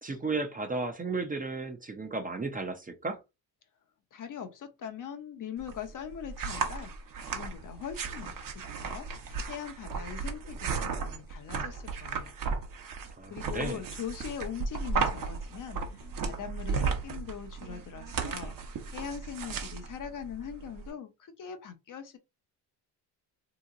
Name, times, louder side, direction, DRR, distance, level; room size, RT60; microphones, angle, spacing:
voice 1, 0.0-3.2 13.2-13.8, right 3 dB, 20° right, 0.6 m, -34 dB
voice 2, 4.1-6.9 7.2-12.4 13.3-22.2, left 8 dB, 45° left, 0.7 m, -41 dB
sound 1, 5.6-20.9, right 5 dB, 50° right, 0.9 m, -35 dB
2.9 x 2.1 x 3.7 m
cardioid pair, 90°, 44 cm